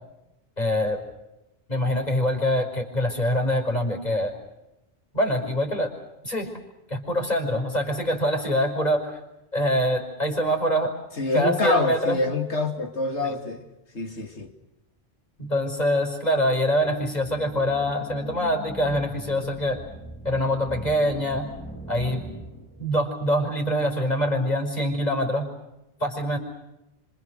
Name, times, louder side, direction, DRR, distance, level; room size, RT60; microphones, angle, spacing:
voice 1, 0.6-1.0 1.7-4.3 5.1-5.9 6.2-6.5 6.9-9.2 9.5-10.9 11.3-12.2 13.2-13.3 15.4-19.8 20.2-21.5 21.9-22.2 22.8-25.5 26.0-26.4, equal, 35° left, 3 dB, 5.4 m, -24 dB
voice 2, 11.2-13.6 13.9-14.5, left 2 dB, 75° left, 5 dB, 3.0 m, -26 dB
sound 1, 16.8-23.1, right 1 dB, 10° left, 3.7 m, -41 dB
29.0 x 26.0 x 6.5 m, 0.93 s
omnidirectional pair, 1.2 m